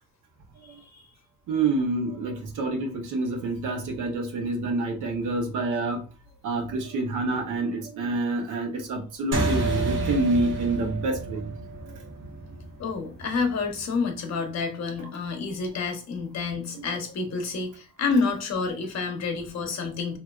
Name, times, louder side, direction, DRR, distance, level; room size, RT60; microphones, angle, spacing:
voice 1, 0.6-1.1 12.8-20.2, left 4 dB, 60° left, 4 dB, 0.9 m, -29 dB
voice 2, 1.5-6.1 6.4-11.5 11.9-12.0 16.8-16.9, right 2 dB, 85° right, 3 dB, 1.0 m, -27 dB
sound 1, 9.3-14.1, right 2 dB, 40° right, 0.8 m, -30 dB
3.1 x 2.7 x 2.3 m, 0.35 s
cardioid pair, 90°, 30 cm